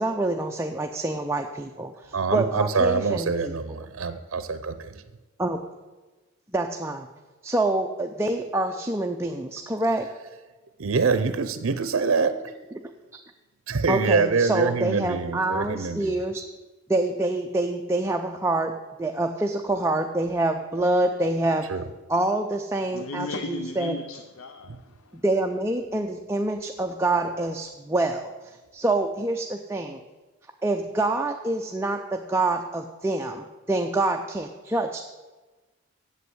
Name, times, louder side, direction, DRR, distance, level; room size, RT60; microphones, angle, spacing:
voice 1, 0.0-3.5 5.4-5.6 6.5-7.1 7.4-10.1 13.9-16.4 16.9-18.7 19.0-21.6 22.1-23.9 25.2-28.3 28.7-30.0 30.6-35.0, right 2 dB, 15° right, 0.5 m, -26 dB
voice 2, 2.1-5.0 10.8-12.4 13.7-16.2 21.7-21.8 24.6-24.8, right 4 dB, 75° right, 0.6 m, -25 dB
voice 3, 22.9-25.2, left 2 dB, 85° left, 0.6 m, -36 dB
8.2 x 7.8 x 7.9 m
head